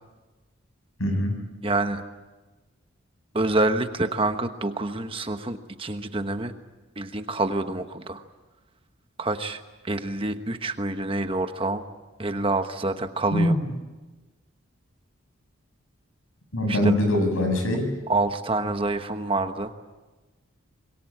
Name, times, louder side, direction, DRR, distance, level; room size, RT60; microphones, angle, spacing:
voice 1, 1.0-1.4 13.3-13.6 16.5-17.9, left 1 dB, 85° left, 5 dB, 6.8 m, -23 dB
voice 2, 1.6-2.0 3.3-6.5 7.0-8.2 9.2-11.8 12.2-13.5 16.7-16.9 18.1-19.7, right 2 dB, 25° right, 8 dB, 1.2 m, -27 dB
26.0 x 22.0 x 8.6 m, 1.2 s
head